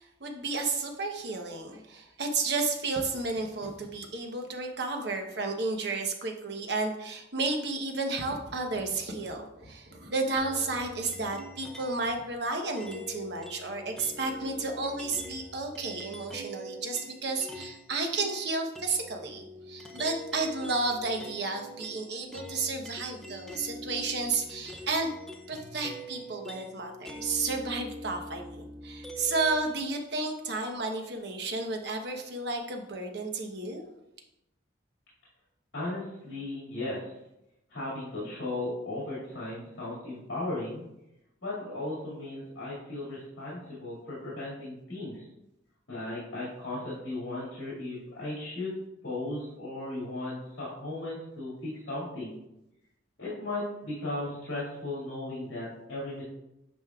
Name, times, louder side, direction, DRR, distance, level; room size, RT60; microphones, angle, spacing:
voice 1, 0.0-25.1 25.5-33.8, right 3 dB, 60° right, 3 dB, 0.9 m, -32 dB
sound 1, 10.4-12.1 12.8-17.8 18.1-29.6, left 1 dB, 5° left, 0.6 m, -44 dB
voice 2, 35.7-37.2 37.7-40.8 41.4-45.2 45.9-48.7 49.0-52.4 53.2-56.2, left 2 dB, 70° left, -8 dB, 2.3 m, -36 dB
9.0 x 5.2 x 2.4 m, 0.87 s
head